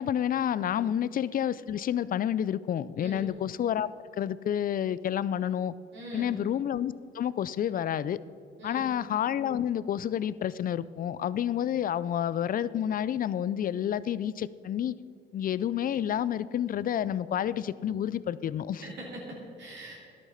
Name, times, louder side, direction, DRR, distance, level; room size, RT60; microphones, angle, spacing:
voice 1, 0.0-3.9 4.2-5.7 6.1-8.2 8.6-14.9 15.3-18.8, left 10 dB, 45° left, 18 dB, 0.4 m, -29 dB
voice 2, 5.9-6.4 8.6-8.9 18.8-20.1, right 1 dB, 65° right, -5 dB, 3.3 m, -42 dB
11.5 x 8.5 x 5.6 m, 2.3 s
cardioid pair, 90°, 20 cm